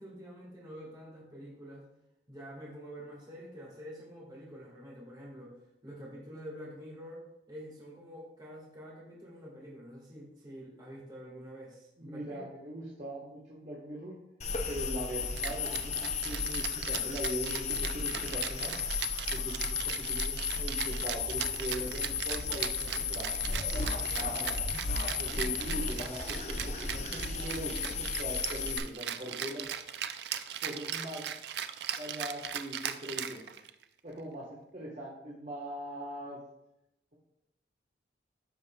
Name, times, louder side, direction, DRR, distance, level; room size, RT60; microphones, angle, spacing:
voice 1, 0.0-1.9 2.3-5.6 5.8-12.4 24.0-24.5, equal, 25° right, -5 dB, 1.8 m, -47 dB
voice 2, 12.0-14.2 14.7-18.7 19.3-23.3 24.1-24.6 25.2-29.6 30.6-31.3 32.0-33.4 34.0-36.4, equal, 40° right, -4 dB, 1.3 m, -41 dB
sound 1, 14.4-28.8, left 5 dB, 40° left, 0.7 m, -34 dB
Rattle (instrument), 15.4-33.8, right 10 dB, 60° right, 0.4 m, -38 dB
13.0 x 5.3 x 2.3 m, 0.87 s
head